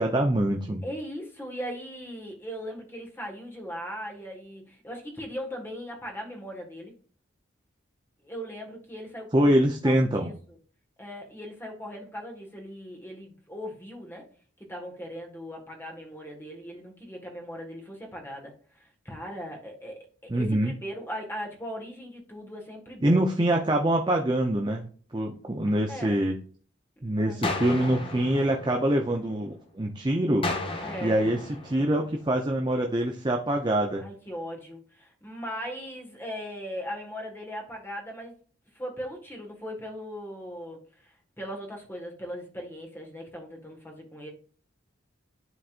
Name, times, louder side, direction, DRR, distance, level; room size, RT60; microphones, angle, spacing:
voice 1, 0.0-0.8 9.3-10.4 20.3-20.7 23.0-26.4 27.0-30.4 31.0-34.0, right 1 dB, 25° right, 2 dB, 0.7 m, -25 dB
voice 2, 0.8-6.9 8.2-9.5 9.8-10.6 11.0-14.3 14.6-23.2 25.9-26.2 27.0-27.5 30.8-31.3 34.0-38.3 38.7-44.3, equal, 10° left, 0 dB, 1.7 m, -39 dB
sound 1, 27.4-29.5 30.4-32.5, left 2 dB, 30° left, 1.1 m, -34 dB
11.0 x 4.1 x 2.5 m, 0.43 s
head